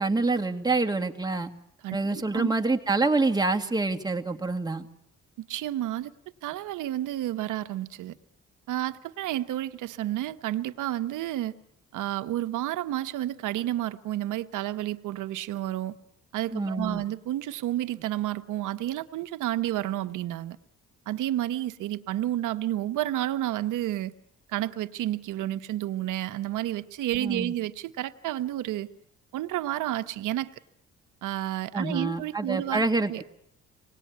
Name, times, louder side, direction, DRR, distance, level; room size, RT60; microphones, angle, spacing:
voice 1, 0.0-1.5 1.9-4.9 16.5-17.0 27.1-27.5 31.7-33.2, right 3 dB, 15° right, 4 dB, 2.1 m, -26 dB
voice 2, 5.4-6.1 6.4-8.2 8.7-11.5 11.9-15.9 16.3-20.6 21.1-24.1 24.5-28.9 29.3-30.5 31.2-32.8 33.1-33.2, right 13 dB, 85° right, 11 dB, 1.1 m, -30 dB
25.5 x 19.0 x 9.5 m, 0.74 s
cardioid pair, 90°, 30 cm